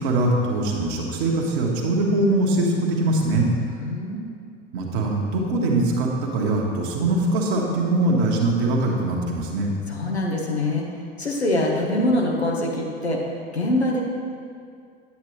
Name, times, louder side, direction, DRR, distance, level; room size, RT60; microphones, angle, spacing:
voice 1, 0.0-3.5 4.7-9.7, right 2 dB, 55° right, -1 dB, 1.5 m, -22 dB
voice 2, 3.6-4.2 9.9-10.8 11.2-13.2 13.5-14.0, left 1 dB, 85° left, -1 dB, 1.3 m, -24 dB
9.3 x 8.6 x 3.2 m, 2.2 s
figure-of-eight pair, 80°, 32 cm